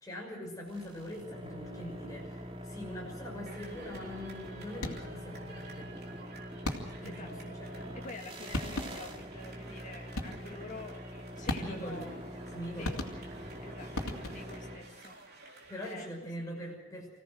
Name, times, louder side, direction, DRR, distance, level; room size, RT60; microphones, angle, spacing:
voice 1, 0.0-6.2 7.0-7.9 11.5-12.0 12.5-13.0 15.7-17.2, equal, 15° left, -3 dB, 6.2 m, -43 dB
sound 1, 0.7-15.2, equal, 25° right, 2.5 m, -44 dB
sound 2, 3.5-15.9, right 3 dB, 45° right, 3.8 m, -53 dB
sound 3, 4.7-5.2 6.6-7.2 8.2-8.3 8.5-9.2 10.1-10.6 11.5-12.0 12.8-13.5 13.9-14.6, left 1 dB, 90° left, 2.8 m, -37 dB
voice 2, 7.0-7.6 7.9-12.2 12.8-13.0 13.6-15.2 15.8-16.2 16.6-16.8, left 2 dB, 35° left, 2 dB, 2.3 m, -48 dB
25.5 x 17.0 x 6.4 m, 0.90 s
head